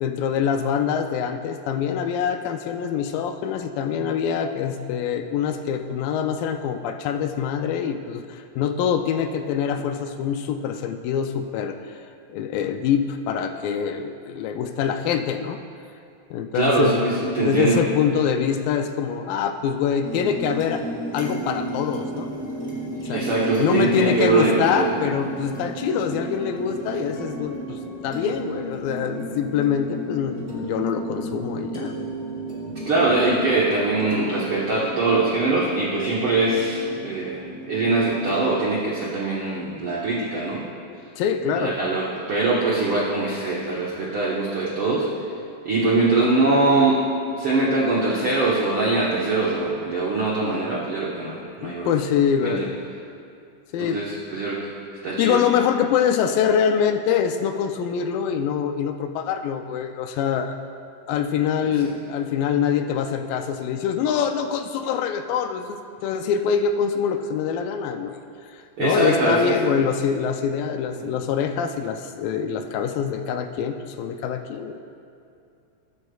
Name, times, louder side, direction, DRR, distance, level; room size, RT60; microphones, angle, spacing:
voice 1, 0.0-11.8 12.3-15.6 16.3-17.0 17.4-20.8 21.1-22.3 23.0-23.3 23.6-32.1 41.2-41.8 51.6-52.8 53.7-54.0 54.3-54.4 55.2-60.6 61.1-68.2 68.8-74.8, left 7 dB, 80° left, 7 dB, 2.2 m, -24 dB
voice 2, 16.5-17.8 23.1-24.9 32.7-40.6 41.5-45.1 45.6-47.0 47.4-51.9 52.4-52.5 53.8-54.6 55.0-55.4 61.8-61.9 68.8-69.8 71.0-71.1, right 3 dB, 70° right, -5 dB, 1.3 m, -22 dB
sound 1, 20.0-38.6, right 1 dB, 5° left, 1.4 m, -33 dB
21.0 x 9.7 x 2.3 m, 2.6 s
omnidirectional pair, 4.2 m